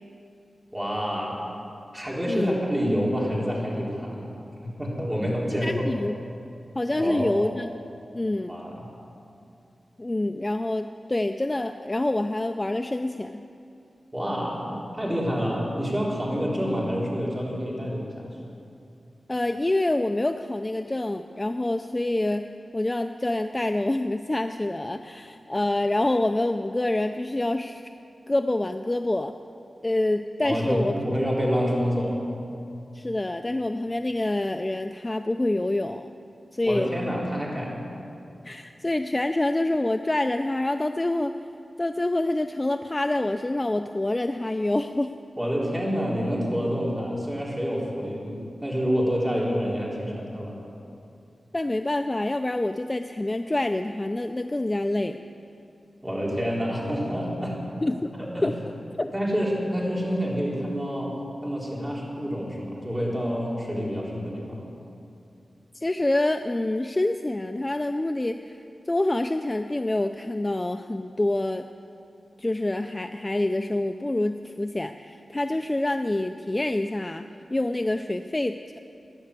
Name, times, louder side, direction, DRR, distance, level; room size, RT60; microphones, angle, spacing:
voice 1, 0.7-1.3 1.9-4.3 4.6-5.9 6.9-7.4 8.5-8.8 14.1-18.4 30.4-32.2 36.6-37.8 45.4-50.5 56.0-57.6 58.3-58.5 59.1-61.1 61.4-64.6, equal, 15° right, -4 dB, 3.5 m, -27 dB
voice 2, 5.6-6.2 6.8-7.7 8.1-8.6 10.0-13.4 19.3-27.9 28.3-29.3 29.8-31.0 32.9-36.1 36.5-36.9 38.4-41.4 41.8-45.1 51.5-55.2 57.8-58.1 58.4-58.5 59.0-59.1 65.7-68.6 68.9-71.6 72.4-77.2 77.5-78.8, left 1 dB, 20° left, 7 dB, 0.4 m, -26 dB
16.0 x 10.5 x 8.2 m, 2.7 s
wide cardioid pair, 105°, 0 cm